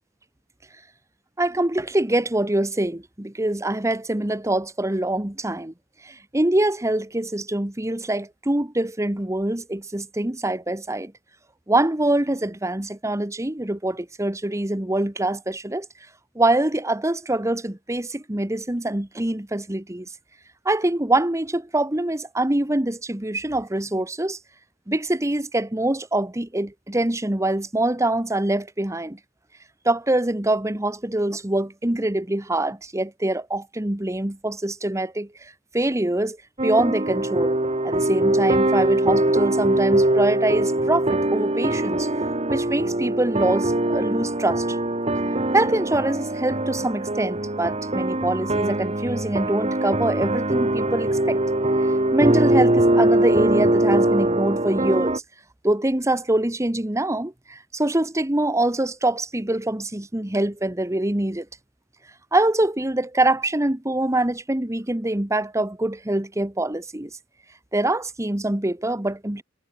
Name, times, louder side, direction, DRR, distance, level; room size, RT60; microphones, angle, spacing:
voice 1, 1.4-5.7 6.0-11.1 11.7-15.9 16.3-20.1 20.6-24.4 24.9-29.2 29.8-36.4 36.6-37.6 37.8-42.1 42.5-44.8 45.5-51.4 52.1-55.2 55.6-61.5 62.3-67.1 67.7-69.4, right 1 dB, 15° right, 1.1 m, -24 dB
sound 1, 36.6-55.2, right 1 dB, 30° right, 2.4 m, -22 dB
head